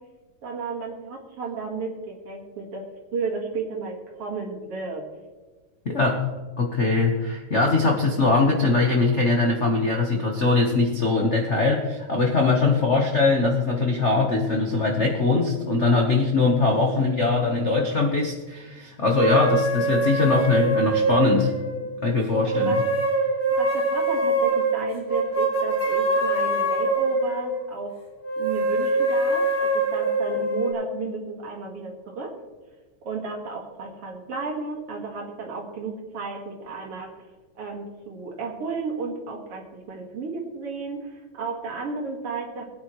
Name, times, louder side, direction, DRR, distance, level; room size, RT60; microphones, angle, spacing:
voice 1, 0.4-5.1 12.7-12.9 21.8-21.9 22.4-22.8 23.6-28.0 28.4-32.3 33.0-37.1 37.6-42.6, right 4 dB, 55° right, 0 dB, 2.9 m, -33 dB
voice 2, 5.8-6.2 6.6-21.5 22.0-22.7, left 3 dB, 70° left, 0 dB, 0.6 m, -21 dB
sound 1, 19.2-21.9 22.4-27.6 28.2-30.7, right 2 dB, 20° left, 2.8 m, -24 dB
21.0 x 9.6 x 3.2 m, 1.3 s
omnidirectional pair, 3.3 m